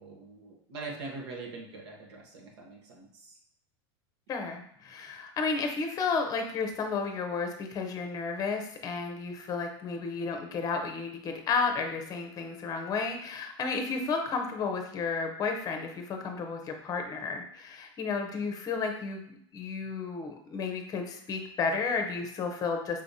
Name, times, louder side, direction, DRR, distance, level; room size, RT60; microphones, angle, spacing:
voice 1, 0.0-3.4, right 3 dB, 75° right, -1 dB, 1.3 m, -43 dB
voice 2, 4.3-23.0, left 4 dB, 25° left, 4 dB, 0.8 m, -32 dB
5.5 x 3.3 x 2.7 m, 0.72 s
supercardioid pair, 140°, 14 cm